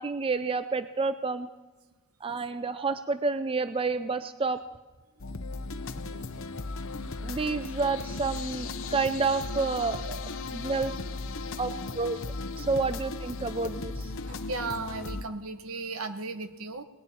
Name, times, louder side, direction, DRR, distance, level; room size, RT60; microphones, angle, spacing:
voice 1, 0.0-1.5 2.2-4.6 7.2-10.9 11.6-12.2 12.6-14.2, right 4 dB, 25° right, 11 dB, 0.4 m, -29 dB
sound 1, 5.2-15.2, left 3 dB, 60° left, 0.9 m, -36 dB
voice 2, 14.3-16.8, right 3 dB, 70° right, 9 dB, 1.2 m, -36 dB
19.0 x 7.3 x 10.0 m, 1.2 s
head